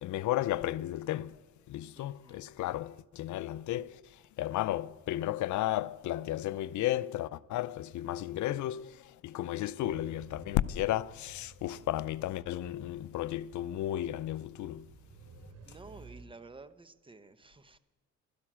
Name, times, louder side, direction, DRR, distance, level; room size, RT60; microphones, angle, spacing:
voice 1, 0.0-15.0, left 14 dB, 75° left, 0.6 m, -34 dB
voice 2, 2.0-2.4 15.6-17.8, right 3 dB, 15° right, 0.9 m, -52 dB
sound 1, 9.8-16.2, right 4 dB, 55° right, 3.6 m, -54 dB
15.0 x 13.0 x 6.1 m
cardioid pair, 90°, 30 cm